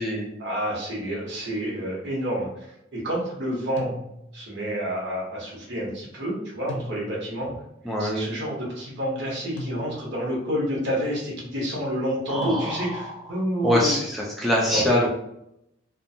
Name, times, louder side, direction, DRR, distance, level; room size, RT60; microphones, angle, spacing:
voice 1, 0.4-2.7 2.9-3.9 4.3-7.5 8.0-14.0 14.7-14.8, equal, 60° right, -4 dB, 1.0 m, -29 dB
sound 1, 3.8-4.5 6.7-7.5 9.6-10.3 12.4-13.2, left 1 dB, 65° left, 0.4 m, -37 dB
voice 2, 7.9-8.3 12.3-13.1 13.6-15.1, left 1 dB, ahead, -4 dB, 0.3 m, -24 dB
2.5 x 2.2 x 2.6 m, 0.80 s
head